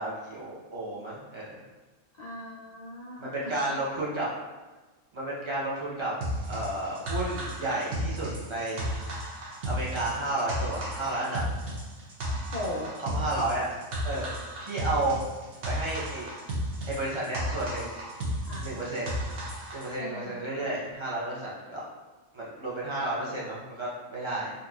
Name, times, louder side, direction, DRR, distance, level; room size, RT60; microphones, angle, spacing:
voice 1, 0.0-1.6 3.2-4.3 5.1-6.1 6.5-8.9 9.7-11.4 13.0-13.7 14.0-14.3 14.6-15.2 15.6-16.3 16.9-17.9 18.6-19.1 19.7-21.8 22.3-24.5, right 2 dB, 30° right, -7 dB, 0.6 m, -32 dB
voice 2, 2.1-3.6 12.5-12.9 18.5-18.8 20.0-20.4, left 1 dB, 80° left, -5 dB, 0.3 m, -38 dB
sound 1, 6.2-19.9, equal, 55° right, 0.8 m, -34 dB
3.9 x 2.8 x 2.3 m, 1.2 s
omnidirectional pair, 1.4 m